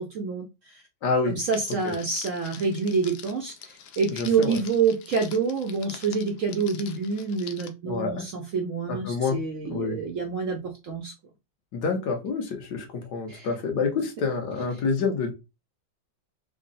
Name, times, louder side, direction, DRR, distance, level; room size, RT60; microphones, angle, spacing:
voice 1, 0.0-0.8 1.3-11.1 13.3-13.5, right 5 dB, 80° right, 1 dB, 0.7 m, -27 dB
voice 2, 1.0-1.3 1.8-1.9 4.2-4.6 7.9-8.2 8.9-9.4 9.7-10.0 11.7-15.3, left 4 dB, 65° left, 3 dB, 1.4 m, -27 dB
Crackle, 1.5-7.7, left 8 dB, 85° left, 1.3 m, -45 dB
3.7 x 2.1 x 3.8 m, 0.26 s
omnidirectional pair, 2.0 m